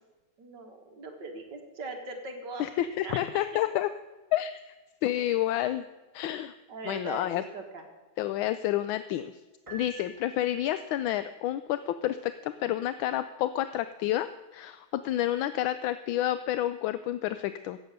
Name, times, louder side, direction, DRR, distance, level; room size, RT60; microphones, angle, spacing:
voice 1, 0.4-2.7 3.0-3.4 6.7-7.9, right 3 dB, 60° right, 3 dB, 2.3 m, -40 dB
voice 2, 2.6-3.9 4.3-4.7 5.0-5.8 6.1-6.5 6.9-7.4 8.2-9.3 9.7-14.3 14.5-17.8, left 13 dB, 80° left, 12 dB, 1.3 m, -29 dB
Piano, 9.7-10.9, right 2 dB, 20° right, 1.4 m, -48 dB
16.0 x 7.7 x 6.6 m, 1.2 s
omnidirectional pair, 2.2 m